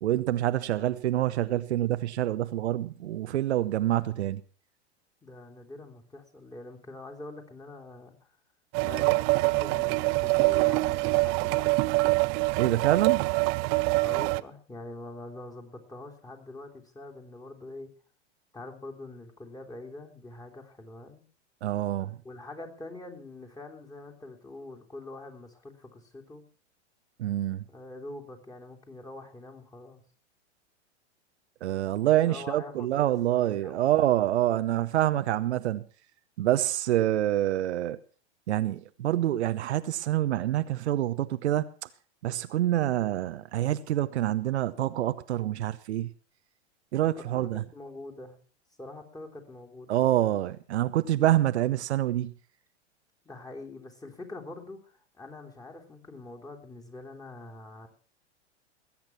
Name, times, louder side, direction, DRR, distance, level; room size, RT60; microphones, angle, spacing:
voice 1, 0.0-4.4 12.6-13.2 21.6-22.1 27.2-27.6 31.6-35.8 36.4-38.0 38.5-41.7 42.2-46.1 46.9-47.6 49.9-52.3, right 13 dB, 70° right, 0.9 m, -26 dB
voice 2, 5.2-8.4 8.8-11.7 14.0-17.9 18.5-21.2 22.2-26.4 27.7-30.0 32.2-34.0 47.3-48.4 48.8-50.0 53.2-57.9, left 2 dB, 10° left, 3.2 m, -44 dB
sound 1, 8.7-14.4, right 26 dB, 40° right, 0.7 m, -25 dB
20.0 x 8.8 x 5.9 m
hypercardioid pair, 105°, 34 cm